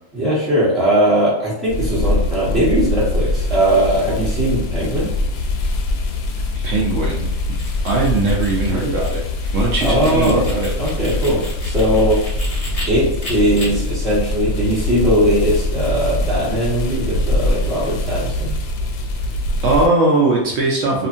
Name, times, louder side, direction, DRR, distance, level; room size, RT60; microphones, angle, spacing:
voice 1, 0.1-5.1 9.8-10.5 10.8-12.2 12.9-18.6, equal, ahead, -10 dB, 1.1 m, -19 dB
sound 1, 1.7-19.9, left 2 dB, 90° left, 1.1 m, -23 dB
voice 2, 6.5-7.3 7.8-9.3 9.5-10.7 11.0-11.2 19.6-21.1, right 3 dB, 70° right, -3 dB, 0.9 m, -19 dB
sound 2, 7.3-12.8 13.2-13.7, left 1 dB, 30° left, 0.9 m, -34 dB
2.7 x 2.4 x 2.5 m, 0.83 s
omnidirectional pair, 1.5 m